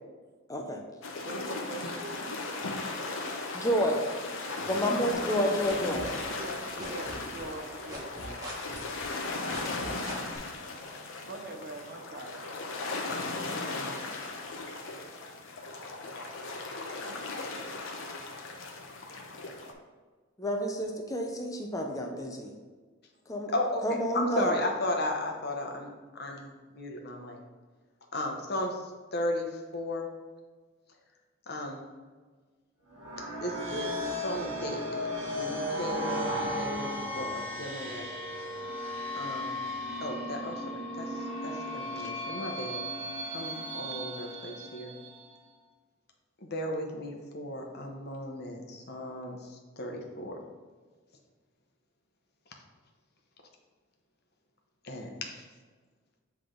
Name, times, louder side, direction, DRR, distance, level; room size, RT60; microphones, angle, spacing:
voice 1, 0.5-0.8 3.5-4.0 4.6-6.0 20.4-22.5 23.3-23.5 23.8-24.6, equal, 15° left, 2 dB, 0.6 m, -29 dB
sound 1, 1.0-19.7, left 3 dB, 90° left, 0.8 m, -37 dB
voice 2, 1.2-2.1 5.4-5.8 6.4-8.6 11.2-12.4, right 2 dB, 55° right, 4 dB, 0.8 m, -42 dB
sound 2, 5.6-6.5 6.8-10.4, equal, 20° right, 1.3 m, -43 dB
voice 3, 24.1-27.4 28.1-28.8 29.1-30.1 31.5-31.8 33.4-35.1 35.3-38.1 39.1-39.5 40.0-42.8 43.3-44.9 46.4-49.4 49.8-50.4 54.8-55.4, left 1 dB, 55° left, 2 dB, 0.9 m, -35 dB
sound 3, 32.9-45.4, equal, 75° right, 1.5 m, -35 dB
7.9 x 3.5 x 3.8 m, 1.4 s
head